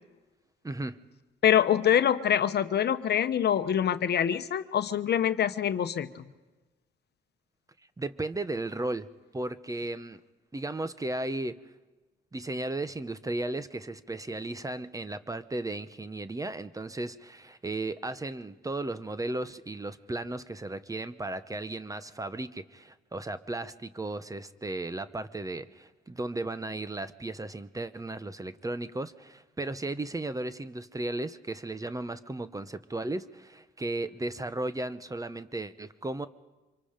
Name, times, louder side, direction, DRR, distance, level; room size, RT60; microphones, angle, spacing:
voice 1, 0.6-1.0 8.0-9.1 9.3-10.2 10.5-11.6 12.3-36.3, right 2 dB, 15° right, 13 dB, 0.9 m, -35 dB
voice 2, 1.4-6.2, left 9 dB, 55° left, 11 dB, 1.0 m, -25 dB
26.0 x 23.5 x 5.2 m, 1.2 s
cardioid pair, 90°, 20 cm